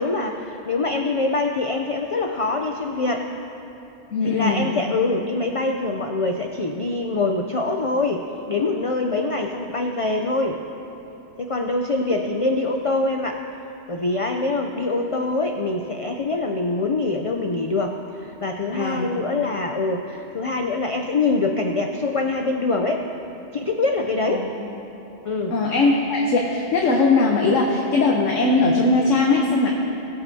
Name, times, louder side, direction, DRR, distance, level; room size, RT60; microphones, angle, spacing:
voice 1, 0.0-3.3 4.2-10.6 11.4-13.4 13.9-23.0 23.5-24.5 25.2-25.6, left 3 dB, 60° left, 3 dB, 0.3 m, -24 dB
voice 2, 4.1-4.7 18.7-19.1 24.3-24.7 25.5-29.7, left 3 dB, 85° left, -1 dB, 1.2 m, -20 dB
19.5 x 8.7 x 2.7 m, 3.0 s
omnidirectional pair, 1.3 m